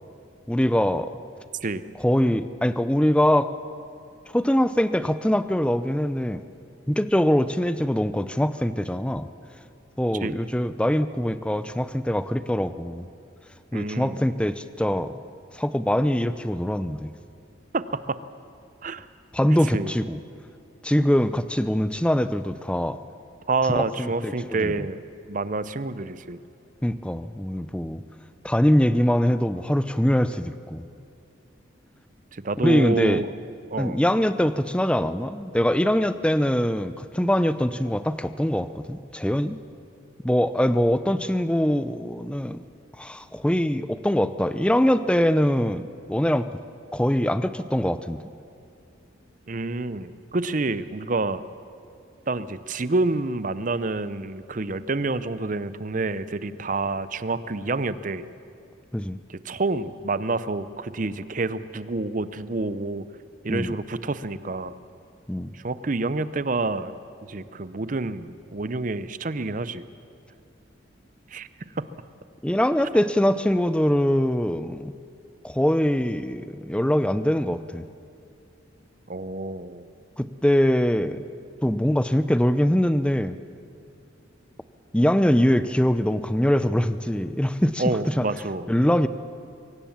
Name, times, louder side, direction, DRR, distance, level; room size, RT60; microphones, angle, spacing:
voice 1, 0.5-1.1 2.0-3.5 4.3-6.4 6.9-9.3 10.0-13.1 13.7-15.1 15.5-17.1 19.3-20.2 20.8-23.0 23.7-24.7 26.8-28.0 28.4-30.8 32.6-33.3 33.8-39.6 40.2-42.6 43.0-45.8 46.1-46.5 46.9-48.2 58.9-59.2 63.5-63.7 65.3-65.5 72.4-74.9 75.4-77.9 80.2-81.3 81.6-83.4 84.9-87.8 88.2-88.3 88.7-89.1, equal, 5° left, 13 dB, 0.5 m, -23 dB
voice 2, 13.7-14.2 17.7-18.2 18.8-19.1 19.7-19.9 23.5-25.0 25.3-26.4 32.3-33.3 33.7-34.0 49.5-51.4 52.3-58.2 59.3-63.0 63.4-64.7 65.5-67.0 67.3-69.8 71.3-71.5 79.1-79.8 87.8-88.7, right 3 dB, 40° right, 14 dB, 0.6 m, -28 dB
23.5 x 18.0 x 7.2 m, 2.5 s
head